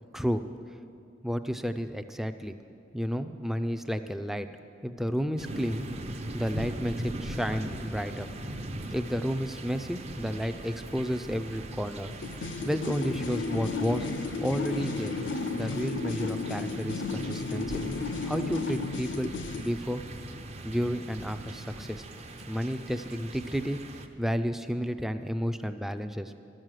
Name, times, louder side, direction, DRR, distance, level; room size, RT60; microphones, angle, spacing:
voice 1, 1.2-2.5 2.9-4.5 4.8-5.9 6.3-8.3 8.9-12.1 12.4-14.1 14.4-15.2 15.5-17.7 18.2-19.3 19.6-20.0 20.6-22.0 22.5-23.8 24.2-26.3, equal, ahead, 9 dB, 0.4 m, -31 dB
sound 1, 5.4-24.1, right 1 dB, 35° right, 0.7 m, -40 dB
sound 2, 12.2-19.7, left 3 dB, 75° left, 0.5 m, -33 dB
13.0 x 6.3 x 9.0 m, 2.5 s
head